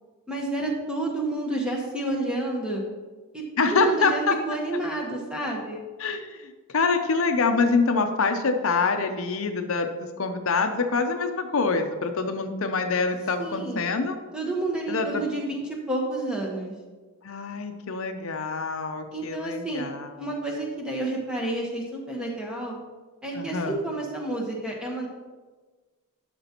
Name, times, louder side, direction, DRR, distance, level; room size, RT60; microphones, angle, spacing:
voice 1, 0.3-2.8 3.3-5.9 13.4-13.9 14.3-16.7 19.1-19.8 20.2-22.8 23.2-25.1, right 2 dB, 5° right, -2 dB, 1.2 m, -30 dB
voice 2, 3.6-4.3 6.0-14.2 14.9-15.2 17.2-20.1 23.3-23.8, left 4 dB, 65° left, 6 dB, 0.6 m, -25 dB
12.0 x 6.0 x 3.0 m, 1.3 s
head